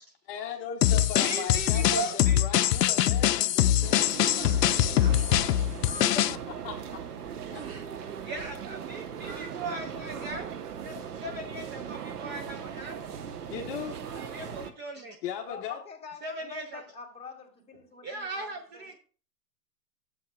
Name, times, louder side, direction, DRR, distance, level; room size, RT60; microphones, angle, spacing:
voice 1, 0.3-7.0 7.5-7.6 8.4-8.5 9.3-9.5 13.5-14.0 15.2-15.8, left 8 dB, 35° left, 2 dB, 1.0 m, -39 dB
sound 1, 0.8-6.4, left 12 dB, 75° left, 0.6 m, -23 dB
voice 2, 1.2-2.4 8.2-10.5 10.8-13.0 14.1-15.2 16.2-16.8 18.0-19.0, right 2 dB, 20° right, 3 dB, 0.9 m, -38 dB
sound 2, 3.8-14.7, right 8 dB, 70° right, 1.1 m, -39 dB
sound 3, 4.3-4.6 4.9-5.3 5.6-6.2 6.5-6.8 7.5-7.9 8.3-8.6 9.2-9.7 10.0-10.4, right 4 dB, 35° right, 1.6 m, -46 dB
voice 3, 15.5-18.9, left 6 dB, 10° left, -3 dB, 2.2 m, -46 dB
12.0 x 7.8 x 2.3 m, 0.38 s
hypercardioid pair, 115°, 49 cm